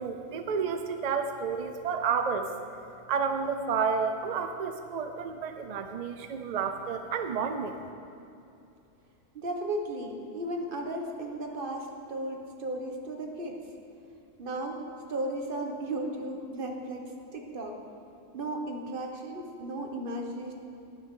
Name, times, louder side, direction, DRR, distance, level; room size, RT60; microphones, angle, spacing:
voice 1, 0.0-2.5 3.1-7.8, right 6 dB, 60° right, 7 dB, 0.4 m, -30 dB
voice 2, 9.3-13.6 14.4-14.8 15.1-17.8 18.3-20.5, right 1 dB, 45° right, 2 dB, 1.2 m, -35 dB
11.5 x 10.5 x 3.7 m, 2.6 s
omnidirectional pair, 1.3 m